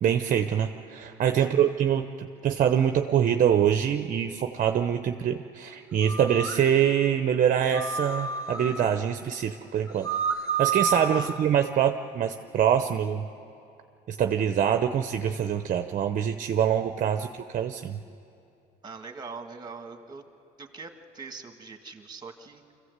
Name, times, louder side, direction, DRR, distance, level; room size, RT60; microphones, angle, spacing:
voice 1, 0.0-10.1 10.6-13.3 14.1-18.0, right 9 dB, 50° right, 7 dB, 0.7 m, -25 dB
voice 2, 1.3-1.7 11.1-11.3 18.8-20.2 20.6-22.7, right 4 dB, 25° right, 6 dB, 1.8 m, -42 dB
sound 1, 6.0-6.7 7.7-8.9 9.9-11.3, right 5 dB, 20° left, 1.9 m, -29 dB
25.5 x 15.0 x 8.1 m, 2.6 s
cardioid pair, 110°, 17 cm